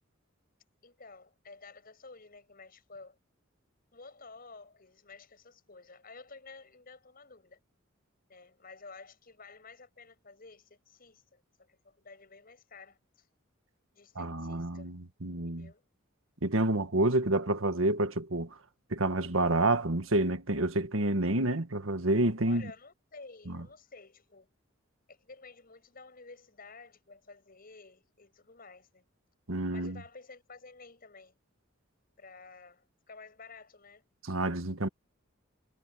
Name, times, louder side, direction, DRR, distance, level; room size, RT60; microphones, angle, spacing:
voice 1, 0.8-3.2 3.9-7.6 8.3-13.3 13.9-14.9 15.4-15.9 22.4-24.5 25.1-29.0 29.7-31.4 32.2-34.0, left 4 dB, 45° left, 6.4 m, -52 dB
voice 2, 14.1-15.7 16.4-18.5 18.9-22.7 23.5-23.6 29.5-30.0 34.2-34.9, right 2 dB, 80° right, 1.6 m, -29 dB
head